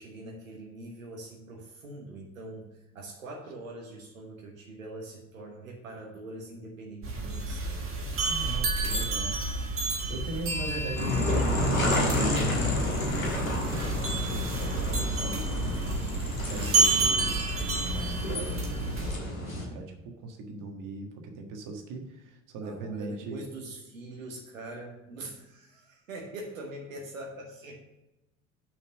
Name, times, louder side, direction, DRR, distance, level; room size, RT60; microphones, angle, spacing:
voice 1, 0.0-8.3 10.1-10.5 22.6-27.8, right 2 dB, 80° right, -1 dB, 1.3 m, -43 dB
sound 1, 7.0-19.1, right 2 dB, 35° right, 1.7 m, -30 dB
voice 2, 8.3-9.6 10.1-23.4, right 3 dB, 50° right, 3 dB, 1.6 m, -40 dB
sound 2, 11.0-19.7, left 1 dB, 90° left, 1.5 m, -30 dB
6.4 x 6.1 x 6.4 m, 0.97 s
figure-of-eight pair, 60°, 40 cm